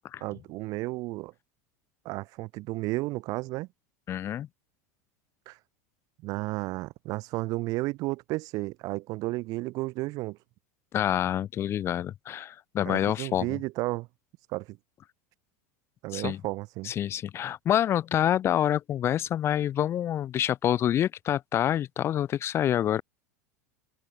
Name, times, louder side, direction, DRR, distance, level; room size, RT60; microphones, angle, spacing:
voice 1, 0.2-1.3 2.0-3.7 5.5-5.6 6.2-10.4 12.8-14.1 14.5-14.8 16.0-16.9, right 21 dB, 45° right, 7.7 m, -33 dB
voice 2, 4.1-4.5 10.9-13.6 16.1-16.4 16.8-23.0, left 11 dB, 30° left, 7.9 m, -27 dB
open air
supercardioid pair, 145°, 8 cm